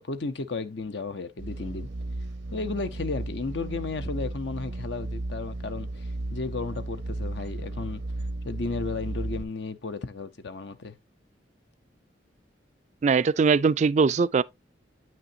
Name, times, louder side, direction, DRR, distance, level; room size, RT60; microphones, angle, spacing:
voice 1, 0.0-1.9 2.5-8.0 8.4-10.9, left 3 dB, 70° left, 0.7 m, -34 dB
sound 1, 1.4-9.4, right 2 dB, 85° right, 0.8 m, -34 dB
voice 2, 13.0-14.4, right 5 dB, 40° right, 0.3 m, -21 dB
8.6 x 6.2 x 2.7 m
head